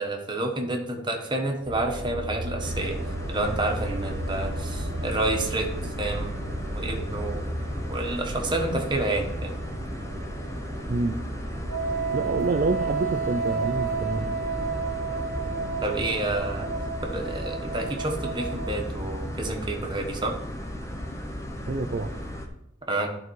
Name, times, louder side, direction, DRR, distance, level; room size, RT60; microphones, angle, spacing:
voice 1, 0.0-3.0 3.3-5.7 6.0-7.4 7.9-9.6 15.8-16.7 17.0-20.4 22.9-23.1, right 2 dB, 25° right, 2 dB, 1.2 m, -29 dB
sound 1, 1.6-16.1, right 1 dB, 75° right, 1.0 m, -36 dB
sound 2, 2.6-22.5, equal, 15° left, 0.9 m, -35 dB
Wind instrument woodwind instrument, 11.7-19.0, right 5 dB, 80° left, 1.9 m, -31 dB
voice 2, 12.1-14.4 21.7-22.1, right 3 dB, 45° right, 4 dB, 0.5 m, -27 dB
11.5 x 4.0 x 4.7 m, 0.79 s
head